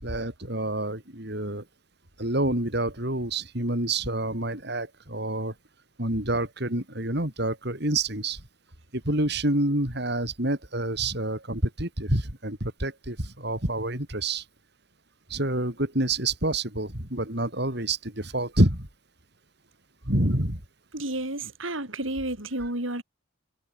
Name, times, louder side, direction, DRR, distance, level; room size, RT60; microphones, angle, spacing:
voice 1, 0.0-1.6 2.2-5.5 6.0-8.4 8.9-14.5 15.3-18.9 20.1-20.6, right 1 dB, 55° right, 5.7 m, -27 dB
voice 2, 20.9-23.0, right 1 dB, 75° right, 7.1 m, -31 dB
head